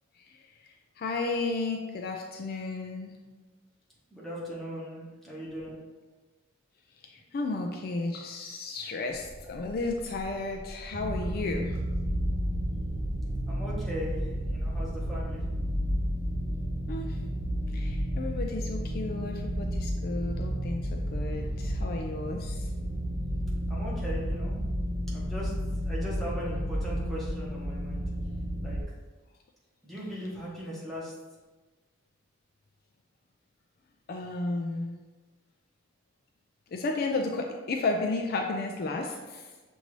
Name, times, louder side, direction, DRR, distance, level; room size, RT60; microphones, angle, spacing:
voice 1, 1.0-3.1 7.0-11.7 16.9-17.2 17.7-22.7 34.1-35.0 36.7-39.5, left 3 dB, 50° left, 2 dB, 0.3 m, -33 dB
voice 2, 4.1-5.8 9.4-9.6 13.5-15.4 23.7-24.5 25.1-25.5 25.9-28.1 28.6-28.8 29.8-31.1, equal, ahead, -7 dB, 1.1 m, -38 dB
sound 1, 9.1-15.5, equal, 35° right, 1.0 m, -46 dB
sound 2, 10.9-28.8, equal, 55° right, 0.6 m, -31 dB
6.5 x 2.6 x 3.1 m, 1.3 s
head